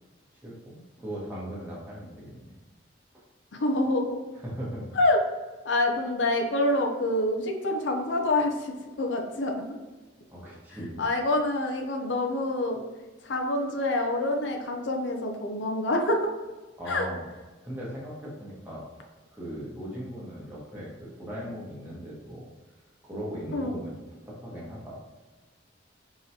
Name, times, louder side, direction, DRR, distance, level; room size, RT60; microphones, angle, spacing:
voice 1, 0.4-2.6 4.3-5.0 10.3-11.0 16.8-17.3 17.6-18.8 19.3-22.5 23.0-23.9 24.3-24.9, equal, 10° right, -6 dB, 1.2 m, -38 dB
voice 2, 3.6-4.2 5.0-5.2 5.6-9.5 11.0-12.8 13.2-16.3 16.9-17.1 23.5-23.8, left 1 dB, 80° left, 3 dB, 0.6 m, -26 dB
4.7 x 3.0 x 2.8 m, 1.2 s
head